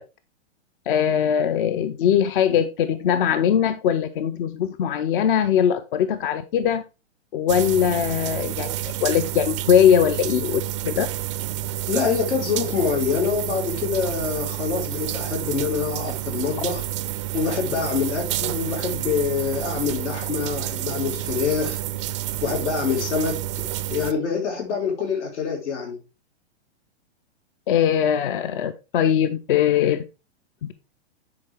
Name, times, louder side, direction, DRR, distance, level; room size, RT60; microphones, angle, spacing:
voice 1, 0.9-6.8 7.3-8.7 9.0-11.1 27.7-30.0 30.6-30.7, left 9 dB, 50° left, 0.6 m, -21 dB
sound 1, 7.5-24.1, right 13 dB, 30° right, 0.4 m, -29 dB
voice 2, 11.9-16.8 17.3-21.8 22.4-26.0, left 6 dB, 90° left, 4.3 m, -26 dB
9.7 x 4.8 x 3.5 m
hypercardioid pair, 155°, 33 cm